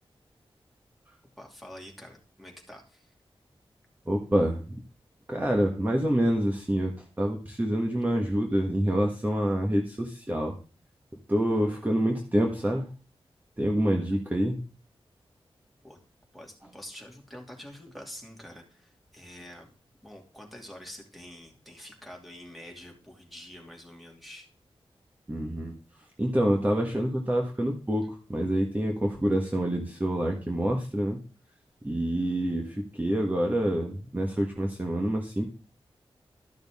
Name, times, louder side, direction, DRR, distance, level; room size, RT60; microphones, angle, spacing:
voice 1, 1.4-3.1 14.0-14.2 15.8-16.0 16.3-19.7 20.0-24.5, left 1 dB, ahead, 1 dB, 2.7 m, -46 dB
voice 2, 4.1-4.8 5.3-10.6 11.3-12.9 13.6-14.6 25.3-25.8 26.2-31.2 31.8-35.5, right 1 dB, 15° right, 0 dB, 1.5 m, -27 dB
13.0 x 6.5 x 3.6 m, 0.38 s
wide cardioid pair, 105°, 10 cm